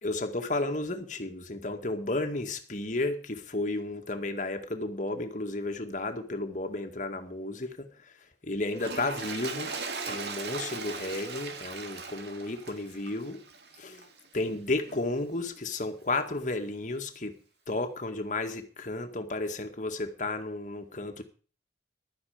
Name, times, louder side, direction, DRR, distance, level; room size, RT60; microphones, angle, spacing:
voice 1, 0.0-7.9 8.4-9.7 10.1-13.4 13.8-14.0 14.3-17.4 17.7-21.2, left 2 dB, 45° left, 2.0 m, -33 dB
Toilet flush, 8.7-14.2 14.9-15.0, right 4 dB, 70° right, 2.0 m, -39 dB
15.0 x 12.0 x 5.1 m
head